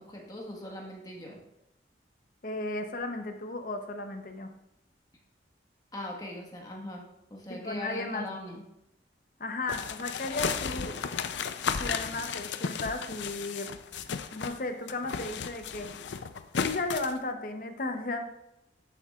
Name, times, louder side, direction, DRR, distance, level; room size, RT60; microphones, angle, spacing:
voice 1, 0.0-1.4 5.9-7.0 7.3-8.6, left 1 dB, 20° left, -1 dB, 1.4 m, -40 dB
voice 2, 2.4-4.5 7.5-8.3 9.4-11.0 11.8-13.7 14.3-15.9 16.5-18.2, left 2 dB, 45° left, 5 dB, 0.8 m, -35 dB
sound 1, 9.7-14.6 14.9-17.2, left 6 dB, 70° left, 0.5 m, -34 dB
10.5 x 7.3 x 2.4 m, 0.88 s
head